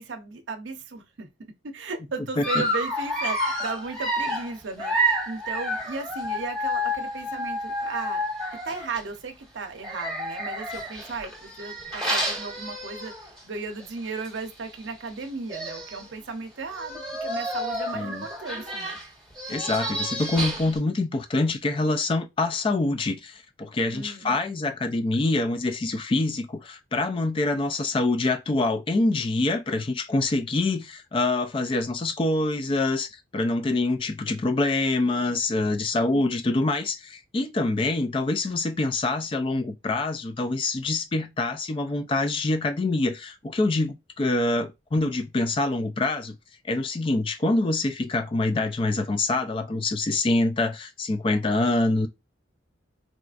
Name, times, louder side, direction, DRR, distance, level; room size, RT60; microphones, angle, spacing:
voice 1, 0.0-8.2 8.6-19.0 23.9-24.4, right 4 dB, 70° right, 0.6 m, -36 dB
Dog, 2.4-9.0 9.8-13.4 13.8-14.0 14.3-14.4 15.2-15.3 15.5-16.1 16.7-20.8, equal, ahead, 1.3 m, -30 dB
voice 2, 17.9-18.2 19.5-33.1 33.3-46.4 46.6-52.1, left 2 dB, 25° left, 0.3 m, -25 dB
4.0 x 2.4 x 2.4 m
head